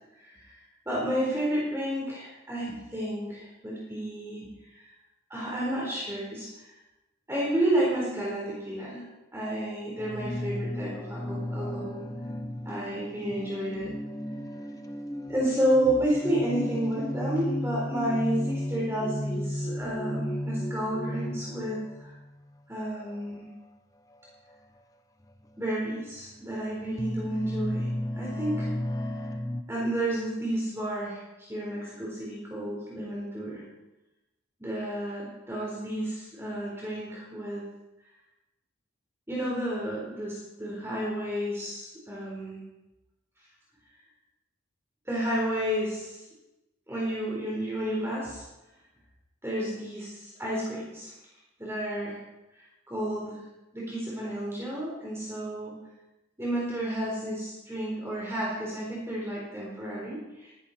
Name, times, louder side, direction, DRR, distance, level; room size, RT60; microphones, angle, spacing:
voice 1, 0.2-0.6 0.9-4.4 5.3-6.5 7.3-9.0 9.3-12.0 12.6-13.9 15.3-22.1 22.7-23.5 25.6-27.9 28.1-28.7 29.7-33.6 34.6-37.6 39.3-42.6 45.1-46.2 46.9-48.4 49.4-51.1 51.6-52.2 52.9-53.4 53.7-55.8 56.4-60.5, right 1 dB, 15° right, -5 dB, 4.1 m, -31 dB
sound 1, 10.0-22.3 23.1-23.4 24.5-24.6 25.2-25.4 26.1-29.6, left 1 dB, 15° left, 0.8 m, -34 dB
18.5 x 13.5 x 4.4 m, 0.97 s
head